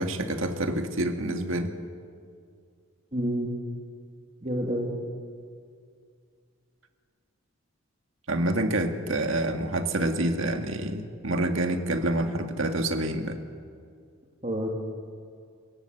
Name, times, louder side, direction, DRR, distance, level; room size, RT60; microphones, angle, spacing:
voice 1, 0.0-1.7 8.3-13.4, right 1 dB, 70° right, 6 dB, 2.0 m, -27 dB
voice 2, 3.1-3.5 4.4-4.9 14.4-14.7, equal, 30° right, 2 dB, 2.7 m, -28 dB
30.0 x 17.0 x 8.0 m, 2.2 s
head